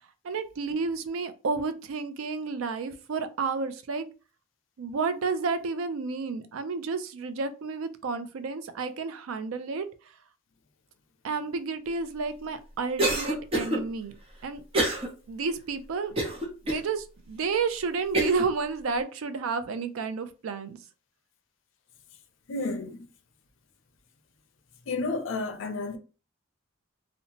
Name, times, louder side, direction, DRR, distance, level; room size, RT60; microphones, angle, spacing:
voice 1, 0.2-4.0 4.8-9.9 11.2-14.2 14.4-14.6 15.3-16.2 16.7-20.8, right 4 dB, 85° right, 0.4 m, -31 dB
Cough, 13.0-13.8 14.7-15.1 15.5-15.6 16.2-16.8 17.4-17.5 18.1-18.5, right 1 dB, 30° right, 0.6 m, -26 dB
voice 2, 22.5-23.1 24.9-26.0, left 3 dB, 70° left, 0.5 m, -31 dB
2.7 x 2.1 x 2.8 m
head